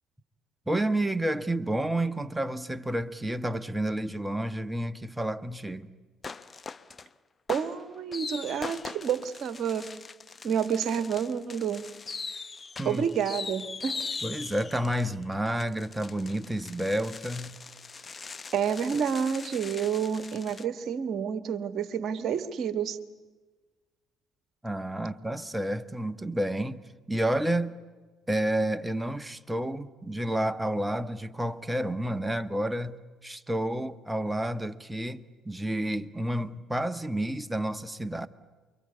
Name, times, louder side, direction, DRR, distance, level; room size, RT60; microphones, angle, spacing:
voice 1, 0.7-5.9 12.8-13.1 14.2-17.6 24.6-27.8 28.3-38.3, right 1 dB, 10° right, 1.3 m, -30 dB
sound 1, 6.2-7.1 7.5-20.6, left 4 dB, 30° left, 0.9 m, -41 dB
voice 2, 7.5-9.9 10.4-11.8 12.8-14.1 18.5-23.0, right 7 dB, 50° right, 1.5 m, -29 dB
28.5 x 23.5 x 8.4 m
figure-of-eight pair, 50°, 0 cm